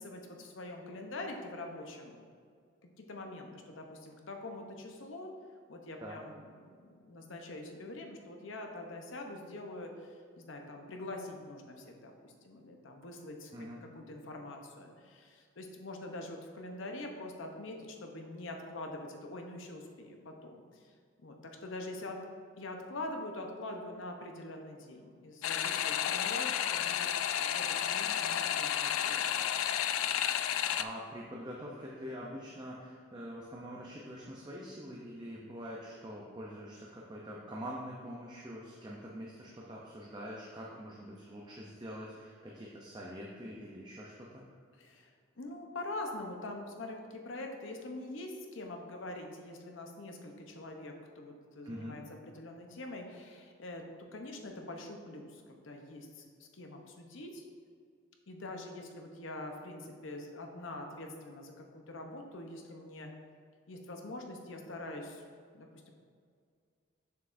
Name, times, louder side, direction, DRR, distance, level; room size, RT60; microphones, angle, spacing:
voice 1, 0.0-2.2 3.0-5.3 5.7-20.9 21.2-22.2 22.6-29.5 44.8-45.1 45.4-53.8 54.1-57.4 58.3-63.1 63.7-65.3 65.5-65.9, left 2 dB, 70° left, 3 dB, 0.8 m, -44 dB
voice 2, 13.5-13.8 30.7-44.4 51.6-52.0, equal, 20° right, -3 dB, 0.5 m, -44 dB
sound 1, 25.4-30.8, left 10 dB, 85° left, 0.3 m, -31 dB
7.1 x 6.7 x 2.6 m, 2.1 s
head